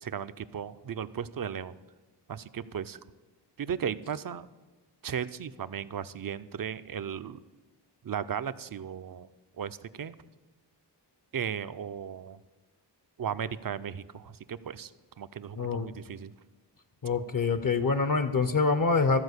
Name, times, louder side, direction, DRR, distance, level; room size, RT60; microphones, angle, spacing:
voice 1, 0.0-1.7 2.3-3.0 3.6-4.5 5.0-7.4 8.0-9.3 9.6-10.2 11.3-12.4 13.2-14.9 15.2-16.3, right 8 dB, 55° right, 14 dB, 0.5 m, -36 dB
voice 2, 15.6-15.9 17.0-19.2, left 4 dB, 50° left, 11 dB, 0.7 m, -25 dB
13.5 x 4.8 x 8.0 m, 1.3 s
wide cardioid pair, 85°, 42 cm